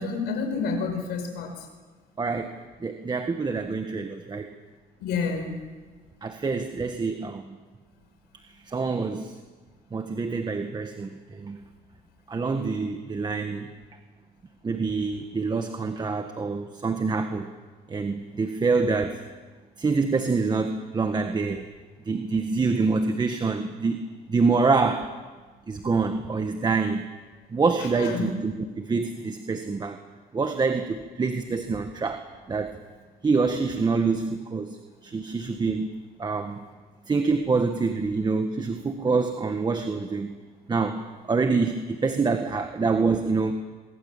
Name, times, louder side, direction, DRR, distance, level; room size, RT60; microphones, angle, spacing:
voice 1, 0.0-1.7 5.0-5.6 27.8-28.3, left 5 dB, 80° left, 4 dB, 5.2 m, -29 dB
voice 2, 2.2-4.5 6.2-7.4 8.6-9.4 9.9-11.6 12.3-13.7 14.6-17.5 17.9-19.2 19.8-21.7 22.1-24.0 24.3-25.1 25.7-27.1 27.5-30.0 30.3-32.8 33.2-35.9 36.2-36.7 37.1-40.4 40.7-43.5, right 4 dB, 25° right, 6 dB, 1.7 m, -26 dB
26.0 x 23.0 x 7.5 m, 1.4 s
cardioid pair, 110°, 17 cm